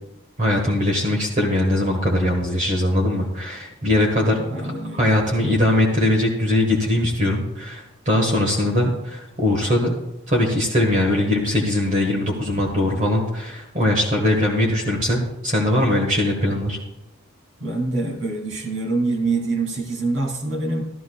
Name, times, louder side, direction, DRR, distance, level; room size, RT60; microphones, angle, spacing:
voice 1, 0.4-4.7 5.0-9.9 10.3-16.8, left 1 dB, 40° right, -1 dB, 1.5 m, -21 dB
voice 2, 4.5-5.1 17.6-20.9, right 3 dB, 75° right, 0 dB, 2.7 m, -25 dB
13.5 x 13.5 x 2.3 m, 0.92 s
head